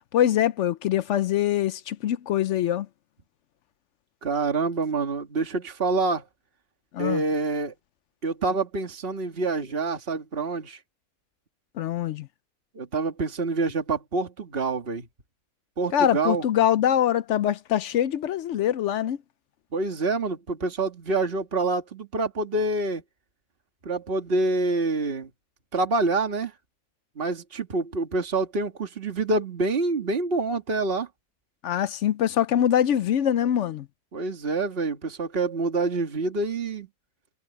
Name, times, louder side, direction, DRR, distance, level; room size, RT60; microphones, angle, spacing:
voice 1, 0.1-2.9 6.9-7.2 11.8-12.3 15.9-19.2 31.6-33.9, left 10 dB, 65° left, 0.8 m, -23 dB
voice 2, 4.2-6.2 7.0-7.7 8.2-10.8 12.8-15.1 15.8-16.5 19.7-23.0 23.9-25.3 25.7-26.5 27.2-31.1 34.1-36.9, right 3 dB, 40° right, 2.1 m, -26 dB
omnidirectional pair, 1.5 m